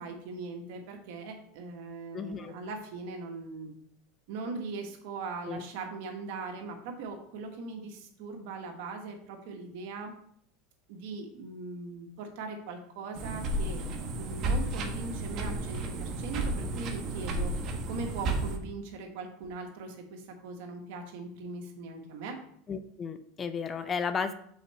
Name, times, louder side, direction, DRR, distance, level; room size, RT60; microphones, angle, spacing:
voice 1, 0.0-3.7 4.3-10.1 10.9-13.8 14.1-17.5 17.9-22.4, right 3 dB, 70° right, 3 dB, 1.4 m, -40 dB
voice 2, 2.1-2.5 5.5-5.6 22.7-24.3, left 6 dB, 25° left, 11 dB, 0.5 m, -33 dB
sound 1, 13.1-18.6, right 2 dB, 45° right, 1.0 m, -32 dB
5.6 x 4.5 x 4.2 m, 0.67 s
supercardioid pair, 115°, 0 cm